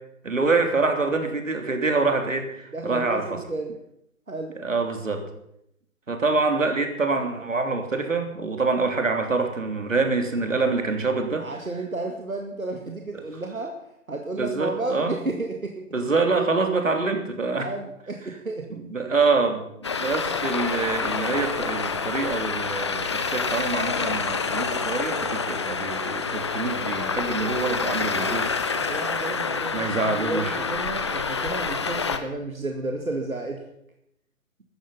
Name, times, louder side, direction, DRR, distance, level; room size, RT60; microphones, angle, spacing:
voice 1, 0.2-3.4 4.6-5.2 6.1-11.5 14.4-15.2 15.9-17.7 18.7-19.7 20.0-28.5 29.7-30.6, right 3 dB, 65° right, 5 dB, 3.3 m, -25 dB
voice 2, 2.7-3.8 4.3-4.6 11.4-13.8 14.1-15.8 17.6-18.8 28.7-33.6, right 2 dB, 85° right, 3 dB, 2.3 m, -32 dB
Traffic noise roadway noise, 19.8-32.2, left 5 dB, 20° left, 0.7 m, -27 dB
15.5 x 13.5 x 5.7 m, 0.78 s
figure-of-eight pair, 145°, 41 cm